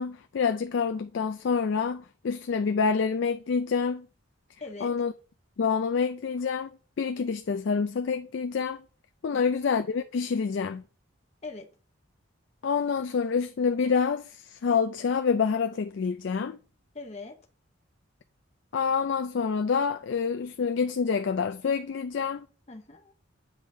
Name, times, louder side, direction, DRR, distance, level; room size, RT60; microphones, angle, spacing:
voice 1, 0.0-4.1 4.8-5.1 5.6-6.7 7.0-8.8 9.2-10.8 12.6-16.6 18.7-22.5, left 5 dB, 60° left, 0.4 m, -27 dB
voice 2, 4.6-4.9 9.3-9.6 11.4-11.7 16.9-17.3 22.7-23.2, left 3 dB, 30° left, 0.8 m, -41 dB
8.0 x 5.6 x 2.7 m
head